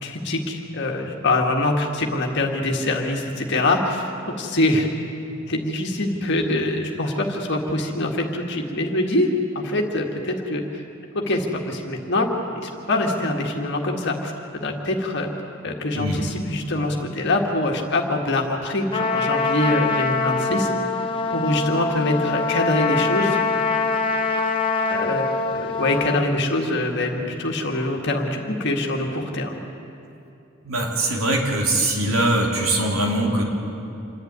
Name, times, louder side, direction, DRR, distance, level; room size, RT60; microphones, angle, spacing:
voice 1, 0.0-4.9 5.5-10.8 11.1-14.3 14.6-15.3 15.6-20.7 21.3-23.4 24.9-25.3 25.5-29.6, left 2 dB, 55° left, 1 dB, 1.8 m, -24 dB
Trumpet, 18.9-26.3, left 4 dB, 25° left, 1.2 m, -24 dB
voice 2, 30.6-33.4, right 1 dB, 85° right, 0 dB, 3.3 m, -22 dB
27.0 x 11.5 x 9.5 m, 2.8 s
head